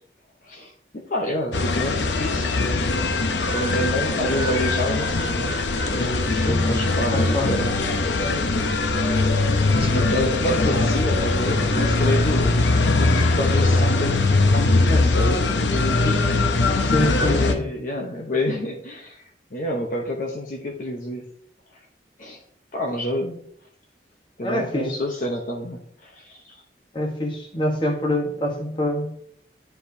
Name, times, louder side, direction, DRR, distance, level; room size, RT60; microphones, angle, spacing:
voice 1, 0.4-6.1 6.4-8.8 9.7-12.5 13.0-15.4 15.7-16.4 17.0-21.2 22.2-22.4 22.7-23.4 24.4-26.6, left 1 dB, 50° left, 0 dB, 0.8 m, -29 dB
sound 1, 1.5-17.5, left 2 dB, 90° left, 0.7 m, -21 dB
voice 2, 6.4-6.8 7.1-7.5 8.2-8.4 16.8-17.6 24.4-25.0 26.9-29.1, left 1 dB, 30° left, 2 dB, 1.2 m, -25 dB
9.7 x 4.5 x 2.7 m, 0.68 s
head